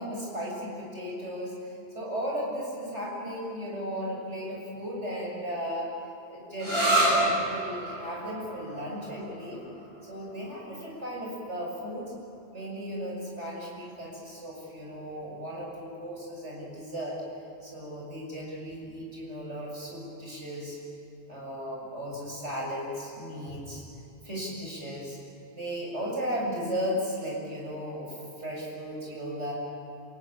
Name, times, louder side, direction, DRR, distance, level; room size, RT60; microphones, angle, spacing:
voice 1, 0.0-5.9 6.3-9.6 10.0-12.1 12.5-17.2 17.6-20.8 21.3-23.8 24.2-25.2 25.5-29.5, equal, 85° right, -2 dB, 7.2 m, -35 dB
sound 1, 6.6-14.0, right 1 dB, 60° right, 6.8 m, -31 dB
28.0 x 17.5 x 8.9 m, 2.8 s
omnidirectional pair, 1.2 m